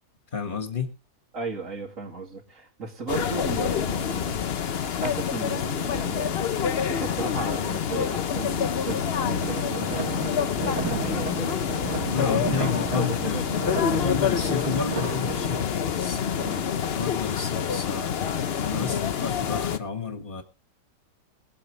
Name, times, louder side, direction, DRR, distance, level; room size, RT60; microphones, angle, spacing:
voice 1, 0.3-0.9 12.1-13.4 13.8-16.5 16.9-20.4, left 6 dB, 30° left, 1.8 m, -31 dB
voice 2, 1.3-4.4 5.0-13.4 16.4-16.6 18.7-19.0, right 4 dB, 50° right, 2.9 m, -36 dB
sound 1, 3.1-19.8, left 8 dB, 55° left, 0.7 m, -27 dB
sound 2, 8.9-15.4, left 2 dB, 70° left, 1.9 m, -39 dB
sound 3, 9.4-15.6, right 4 dB, 75° right, 2.7 m, -34 dB
22.0 x 8.4 x 3.2 m
omnidirectional pair, 1.8 m